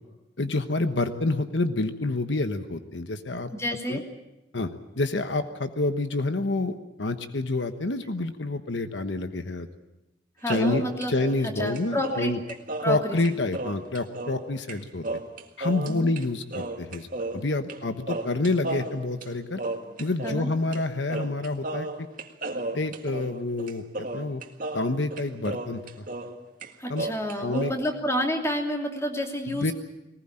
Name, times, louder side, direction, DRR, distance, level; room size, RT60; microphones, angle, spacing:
voice 1, 0.4-3.5 3.9-4.0 4.5-4.7 5.0-9.7 10.5-12.4 12.8-15.1 15.6-19.6 20.0-22.1 22.7-24.4 24.7-26.1 26.9-27.1 27.4-27.7 29.5-29.7, left 2 dB, 75° left, 9 dB, 1.2 m, -28 dB
voice 2, 3.5-4.0 10.4-11.1 11.6-12.3 12.8-13.2 15.9-16.1 20.2-20.5 26.8-29.7, equal, 15° left, 3 dB, 2.9 m, -29 dB
sound 1, 10.5-14.4 14.7-14.8 15.0-16.2 16.5-17.8 18.1-20.4 20.7-20.8 21.1-26.4 26.6-27.7, right 2 dB, 50° right, 1.9 m, -34 dB
21.0 x 19.5 x 8.9 m, 0.95 s
head